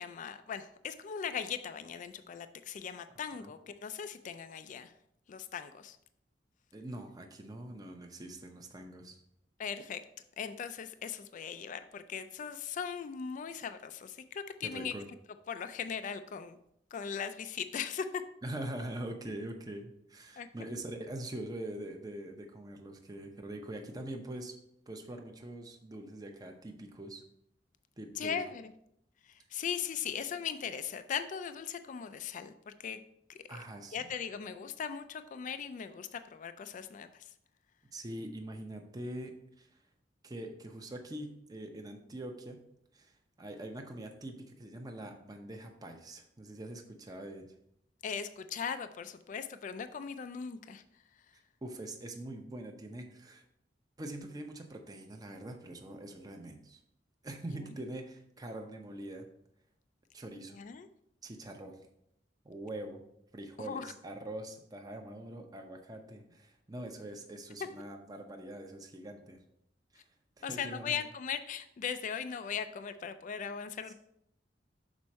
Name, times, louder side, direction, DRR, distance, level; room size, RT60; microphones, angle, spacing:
voice 1, 0.0-4.9 5.3-6.0 9.6-10.0 10.4-14.9 15.5-16.6 16.9-18.2 20.4-20.5 28.2-28.7 29.3-33.0 33.3-33.6 33.9-37.3 48.0-50.8 57.6-57.8 60.6-60.9 63.6-63.9 70.4-73.9, left 7 dB, 45° left, 11 dB, 0.3 m, -39 dB
voice 2, 6.7-9.2 14.6-15.0 18.4-24.5 24.9-27.2 28.0-28.4 30.1-30.2 33.5-34.1 37.9-39.8 40.2-42.6 42.9-47.5 51.6-53.4 54.0-56.8 57.2-59.3 60.1-60.6 61.2-61.8 62.4-63.0 63.3-69.4 69.9-70.0 70.4-70.9 73.9-74.0, right 1 dB, 20° right, 3 dB, 0.7 m, -43 dB
6.2 x 4.3 x 4.1 m, 0.75 s
head